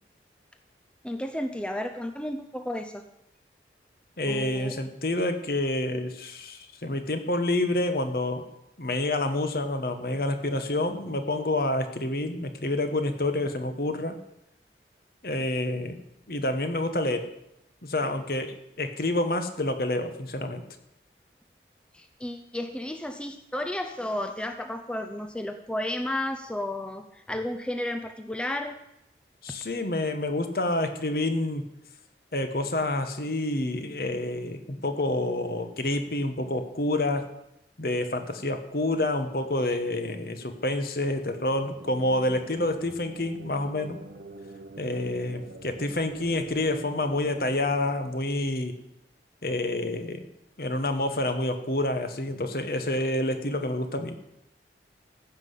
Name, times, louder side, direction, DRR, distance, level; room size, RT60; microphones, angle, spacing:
voice 1, 1.0-3.0 4.2-4.8 21.9-28.8, left 1 dB, 5° left, 6 dB, 0.6 m, -33 dB
voice 2, 4.2-8.4 8.8-14.2 15.2-16.0 16.3-17.3 17.8-20.6 29.4-31.7 32.3-37.3 37.8-44.0 44.8-48.7 49.4-50.3 50.6-54.2, left 1 dB, 55° left, 7 dB, 1.3 m, -28 dB
sound 1, 41.4-49.0, right 2 dB, 70° right, 1.1 m, -46 dB
15.0 x 5.8 x 8.2 m, 0.84 s
head